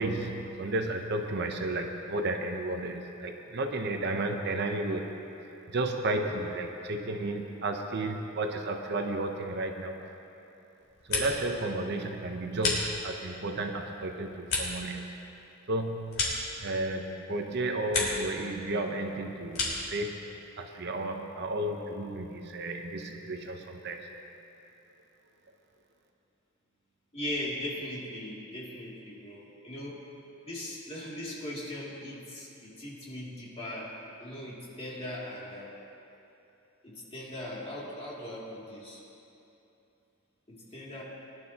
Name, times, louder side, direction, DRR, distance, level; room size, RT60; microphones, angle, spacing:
voice 1, 0.0-5.1 5.4-10.1 11.1-15.1 15.7-16.2 16.6-20.3 20.6-24.1, right 2 dB, 55° right, 4 dB, 0.8 m, -33 dB
sound 1, 10.8-11.6 11.9-13.4 13.8-17.1 17.4-18.3 18.6-20.0, left 3 dB, 75° left, 3.1 m, -34 dB
voice 2, 27.1-30.0 30.4-35.7 36.8-39.0 40.5-41.0, left 1 dB, 30° left, -6 dB, 2.7 m, -39 dB
20.5 x 11.5 x 2.9 m, 2.9 s
head